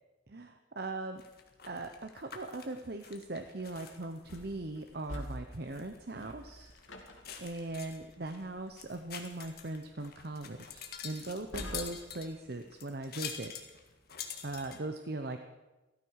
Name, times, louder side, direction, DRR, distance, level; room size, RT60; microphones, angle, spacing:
voice 1, 0.3-1.2 1.6-6.7 7.4-13.5 14.4-15.4, right 2 dB, 55° right, 6 dB, 0.8 m, -40 dB
sound 1, 1.2-14.8, left 7 dB, 50° left, 1.8 m, -47 dB
sound 2, 4.2-12.3, equal, 85° left, 2.6 m, -49 dB
15.5 x 13.5 x 6.5 m, 1.1 s
head